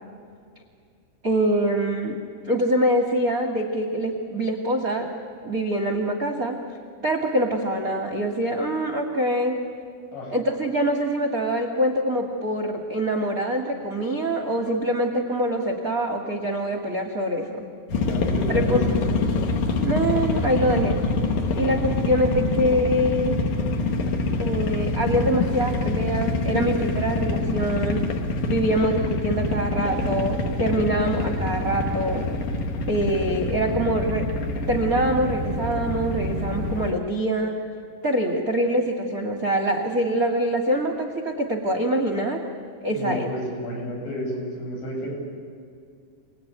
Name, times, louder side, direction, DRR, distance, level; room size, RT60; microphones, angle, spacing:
voice 1, 1.2-2.1 2.5-5.1 5.4-6.6 7.0-9.6 10.3-17.5 18.5-18.8 19.8-21.0 21.5-23.4 24.4-28.0 28.5-32.2 32.9-34.2 34.7-37.6 38.0-42.4 42.8-43.3, right 1 dB, 45° right, 3 dB, 1.2 m, -24 dB
sound 1, 17.9-36.9, left 3 dB, 55° left, 2.4 m, -26 dB
voice 2, 18.1-19.0 42.9-45.1, equal, 75° left, -2 dB, 10.5 m, -31 dB
28.5 x 19.5 x 9.5 m, 2.3 s
omnidirectional pair, 5.1 m